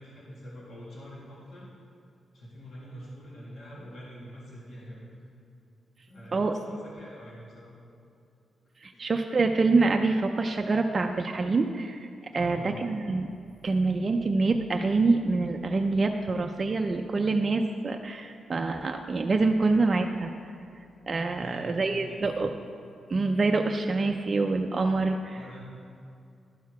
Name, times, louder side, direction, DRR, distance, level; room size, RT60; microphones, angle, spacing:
voice 1, 0.0-1.7 2.3-5.1 6.1-7.8 8.9-9.1 12.3-12.8 21.3-22.4 25.3-25.6, equal, 60° left, -6 dB, 1.9 m, -45 dB
voice 2, 8.8-12.1 12.3-13.3 13.6-20.5 21.1-22.5 23.1-25.4, right 3 dB, 35° right, 3 dB, 0.4 m, -26 dB
11.5 x 4.6 x 4.6 m, 2.5 s
cardioid pair, 110°, 0 cm